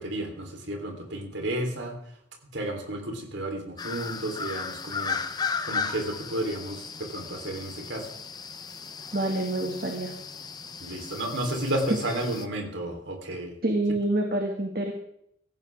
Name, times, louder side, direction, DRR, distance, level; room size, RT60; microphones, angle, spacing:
voice 1, 0.0-1.9 2.5-5.2 5.6-8.1 10.8-13.6, right 1 dB, 85° right, 3 dB, 3.9 m, -32 dB
sound 1, 3.8-12.5, left 5 dB, 20° left, 0.7 m, -35 dB
voice 2, 9.1-10.1 13.6-14.9, right 1 dB, 50° right, 2 dB, 2.0 m, -27 dB
17.5 x 14.5 x 3.7 m, 0.73 s
head